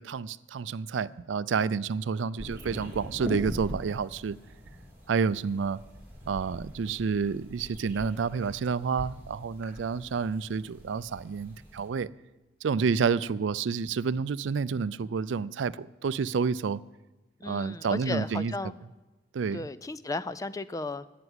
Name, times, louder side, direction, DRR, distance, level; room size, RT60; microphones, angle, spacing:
voice 1, 0.0-4.4 5.1-5.8 6.3-12.1 12.6-16.8 17.4-18.5 19.3-19.7, right 5 dB, 85° right, 0.4 m, -29 dB
sound 1, 2.4-11.9, left 1 dB, 10° right, 3.6 m, -43 dB
voice 2, 17.4-18.7 19.5-21.1, left 2 dB, 20° left, 0.4 m, -35 dB
16.0 x 6.0 x 9.6 m
head